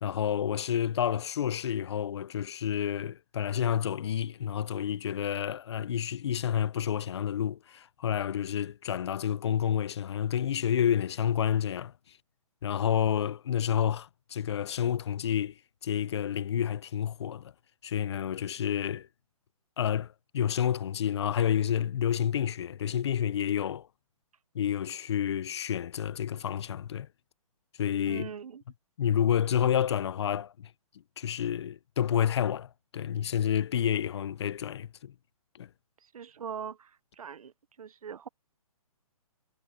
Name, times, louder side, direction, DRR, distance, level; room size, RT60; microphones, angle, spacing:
voice 1, 0.0-11.9 12.6-15.5 15.8-17.5 17.8-19.1 19.8-23.9 24.5-27.1 27.8-28.3 29.0-30.7 31.2-35.1 35.5-35.7, left 9 dB, 45° left, 0.7 m, -29 dB
voice 2, 28.1-28.6 36.1-36.9 37.2-37.5 37.8-38.3, right 7 dB, 70° right, 1.0 m, -41 dB
hypercardioid pair, 165°, 19 cm